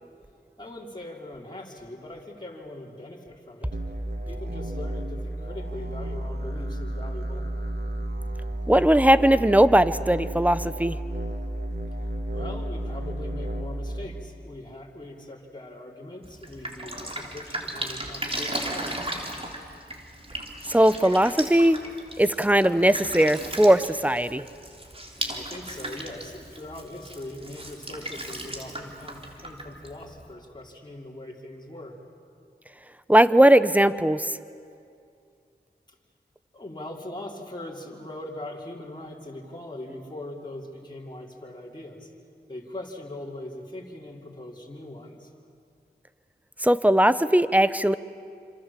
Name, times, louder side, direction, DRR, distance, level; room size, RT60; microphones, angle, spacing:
voice 1, 0.6-3.8 4.3-7.5 12.3-19.1 22.1-22.2 25.3-32.0 35.9-36.0 36.5-42.1 42.5-45.3, left 1 dB, 25° left, -3 dB, 4.4 m, -41 dB
sound 1, 3.7-14.1, right 1 dB, 75° right, 2.0 m, -32 dB
voice 2, 8.7-11.0 20.7-21.8 22.2-24.4 33.1-34.3 46.6-48.0, right 1 dB, 10° right, 14 dB, 1.0 m, -19 dB
Drip, 16.2-30.3, right 1 dB, 35° right, 3.6 m, -36 dB
28.5 x 26.0 x 7.7 m, 2.4 s
wide cardioid pair, 50°, 18 cm